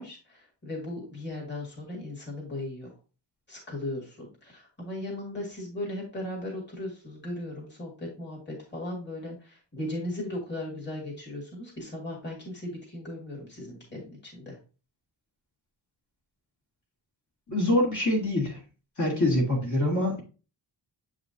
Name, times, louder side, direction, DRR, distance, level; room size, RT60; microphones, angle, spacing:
voice 1, 0.0-2.9 3.5-14.6, left 1 dB, 25° left, -3 dB, 2.3 m, -37 dB
voice 2, 17.5-18.6 19.0-20.2, left 1 dB, 40° left, -3 dB, 2.3 m, -25 dB
8.1 x 4.9 x 2.7 m, 0.34 s
wide cardioid pair, 175°, 44 cm